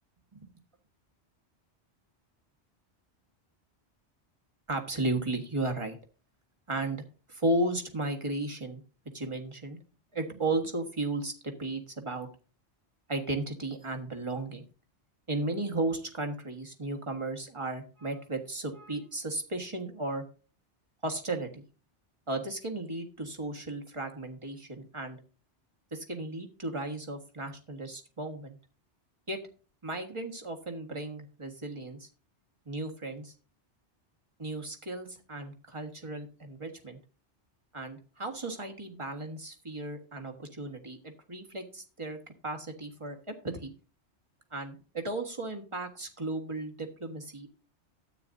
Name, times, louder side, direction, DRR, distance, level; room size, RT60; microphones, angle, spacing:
voice 1, 4.7-6.0 6.7-8.8 9.1-9.8 10.1-12.3 13.1-14.7 15.3-20.2 21.0-21.6 22.3-25.2 25.9-28.6 29.3-29.4 29.8-32.1 32.6-33.3 34.4-37.0 37.7-42.2 42.4-43.7 44.5-47.5, right 2 dB, 25° right, 3 dB, 1.6 m, -35 dB
13.0 x 8.9 x 2.6 m, 0.36 s
omnidirectional pair, 1.2 m